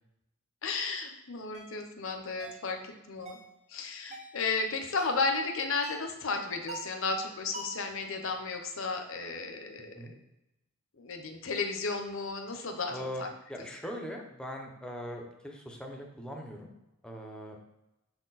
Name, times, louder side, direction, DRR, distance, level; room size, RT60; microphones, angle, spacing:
voice 1, 0.6-3.4 3.7-9.9 11.0-13.3, left 4 dB, 65° left, 5 dB, 0.8 m, -33 dB
sound 1, 1.5-1.7 2.4-2.7 3.3-3.5 4.1-4.4 5.0-5.3 5.8-6.1 6.7-7.0 7.5-7.9, right 2 dB, 30° right, 0.8 m, -43 dB
voice 2, 12.9-16.7 17.0-17.6, equal, 5° left, 1 dB, 0.8 m, -41 dB
6.8 x 4.4 x 4.1 m, 0.92 s
head